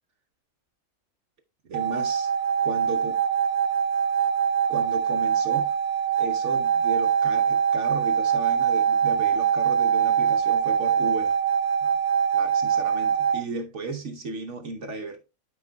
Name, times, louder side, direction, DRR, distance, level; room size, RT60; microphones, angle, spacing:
voice 1, 1.7-2.3 2.6-3.2 4.7-5.7 6.2-11.3 12.3-15.2, right 3 dB, 60° right, 1.1 m, -35 dB
sound 1, 1.7-13.4, right 7 dB, 85° right, 1.4 m, -23 dB
12.0 x 5.3 x 2.2 m
omnidirectional pair, 1.5 m